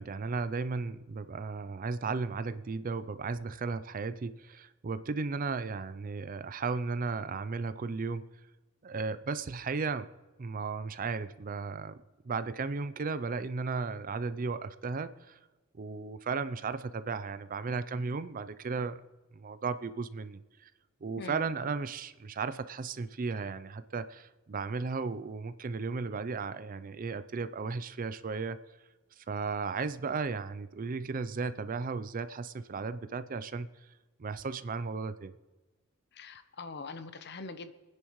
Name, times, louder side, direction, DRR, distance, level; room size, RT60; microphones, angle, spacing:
voice 1, 0.0-8.3 8.8-10.1 10.4-15.4 15.8-19.0 19.3-20.7 21.0-28.6 29.2-33.7 34.2-35.3, right 4 dB, 40° right, 13 dB, 0.5 m, -35 dB
voice 2, 36.1-37.7, left 3 dB, 55° left, 10 dB, 0.8 m, -43 dB
29.0 x 10.0 x 3.1 m, 1.2 s
head